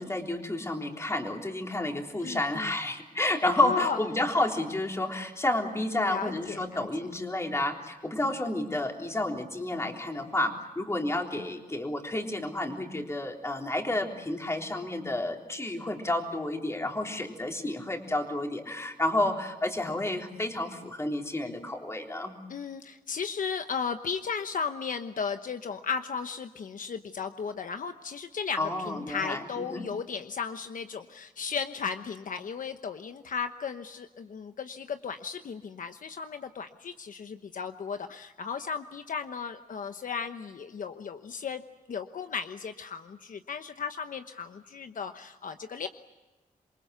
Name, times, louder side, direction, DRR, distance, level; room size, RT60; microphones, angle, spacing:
voice 1, 0.0-22.4 28.6-29.8, left 1 dB, 20° left, 2 dB, 3.7 m, -30 dB
voice 2, 2.2-2.8 3.6-4.0 5.8-6.9 22.5-41.6 41.9-45.9, left 6 dB, 65° left, 8 dB, 1.1 m, -35 dB
27.5 x 23.5 x 8.3 m, 1.1 s
wide cardioid pair, 150°, 15 cm